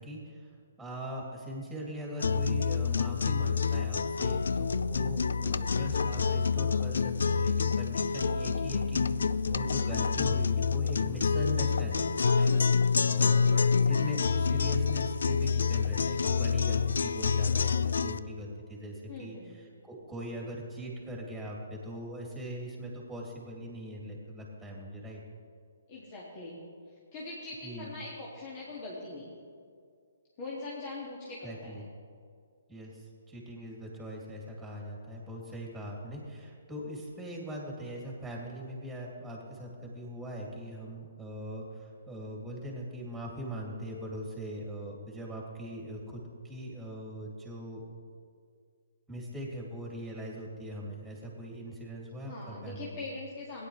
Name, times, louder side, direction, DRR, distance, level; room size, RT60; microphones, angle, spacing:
voice 1, 0.0-25.2 27.6-27.9 31.4-31.9 32.7-47.8 49.1-53.0, equal, 5° right, -3 dB, 2.8 m, -41 dB
sound 1, 2.2-18.2, left 5 dB, 75° left, 0.4 m, -27 dB
voice 2, 19.1-19.6 25.9-26.6 27.1-29.4 30.4-31.8 52.3-53.7, left 2 dB, 35° left, -5 dB, 2.1 m, -42 dB
16.5 x 10.0 x 3.3 m, 2.2 s
hypercardioid pair, 140°, 0 cm